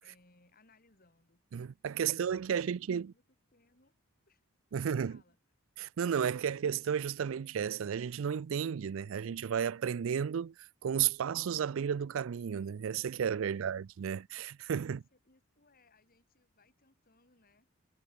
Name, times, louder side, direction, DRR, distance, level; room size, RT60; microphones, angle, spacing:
voice 1, 0.0-1.4 2.0-3.2 3.5-3.9 4.3-4.4 4.8-5.4 13.5-14.2 14.8-17.7, left 2 dB, 45° left, 4.2 m, -67 dB
voice 2, 1.5-3.1 4.7-5.2 5.8-15.0, right 8 dB, 70° right, 0.4 m, -33 dB
head